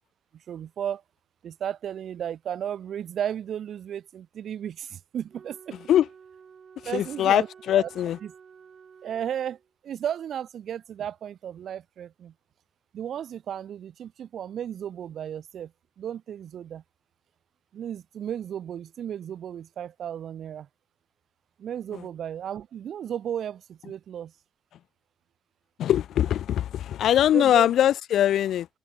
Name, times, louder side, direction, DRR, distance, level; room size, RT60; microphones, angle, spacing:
voice 1, 0.5-1.0 1.4-5.8 6.8-7.5 7.8-7.9 8.2-8.3 9.0-9.6 9.8-12.3 12.9-15.7 16.0-16.8 17.7-20.7 21.6-24.3 27.3-27.7, right 9 dB, 65° right, 0.9 m, -34 dB
Wind instrument woodwind instrument, 5.3-9.7, right 6 dB, 45° right, 6.6 m, -51 dB
voice 2, 6.8-8.2 21.9-22.0 25.8-28.7, left 11 dB, 75° left, 0.4 m, -22 dB
open air
cardioid pair, 90°, 0 cm